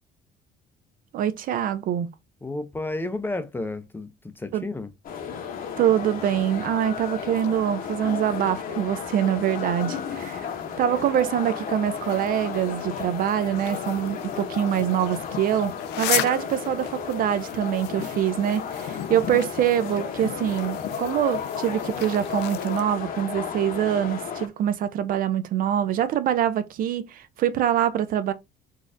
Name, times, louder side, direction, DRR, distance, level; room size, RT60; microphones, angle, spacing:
voice 1, 1.1-2.1 4.5-4.7 5.8-10.5 10.8-28.3, right 10 dB, 55° right, 0.4 m, -24 dB
voice 2, 2.4-4.9, left 2 dB, 10° left, 0.5 m, -32 dB
sound 1, 5.0-24.5, left 7 dB, 55° left, 0.8 m, -33 dB
sound 2, 5.4-22.8, left 12 dB, 85° left, 0.4 m, -38 dB
4.0 x 2.4 x 2.5 m
cardioid pair, 110°, 17 cm